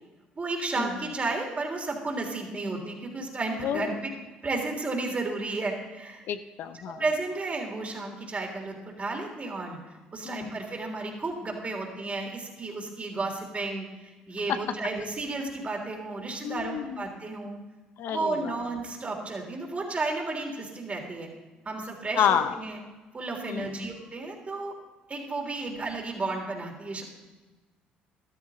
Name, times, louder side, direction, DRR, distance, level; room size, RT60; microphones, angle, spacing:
voice 1, 0.3-3.9 4.4-6.3 6.8-9.8 10.1-13.9 14.3-17.6 18.1-21.3 21.6-22.8 23.1-24.7 25.1-27.0, right 3 dB, 35° right, 1 dB, 3.4 m, -33 dB
voice 2, 3.6-4.0 6.3-7.0 10.2-10.6 16.4-17.1 18.0-18.6 22.2-22.6 23.5-23.9 25.7-25.8, left 9 dB, 65° left, 11 dB, 0.7 m, -30 dB
13.5 x 12.5 x 3.8 m, 1.2 s
hypercardioid pair, 60°, 4 cm